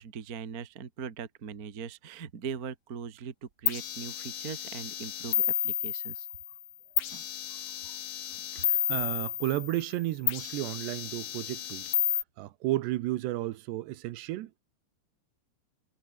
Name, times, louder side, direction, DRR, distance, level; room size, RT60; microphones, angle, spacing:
voice 1, 0.0-6.3, right 6 dB, 50° right, 1.1 m, -40 dB
sound 1, 3.7-6.6 7.0-9.9 10.3-12.2, left 11 dB, 55° left, 3.0 m, -32 dB
voice 2, 8.5-12.0 12.4-14.6, right 16 dB, 80° right, 3.1 m, -33 dB
omnidirectional pair, 4.9 m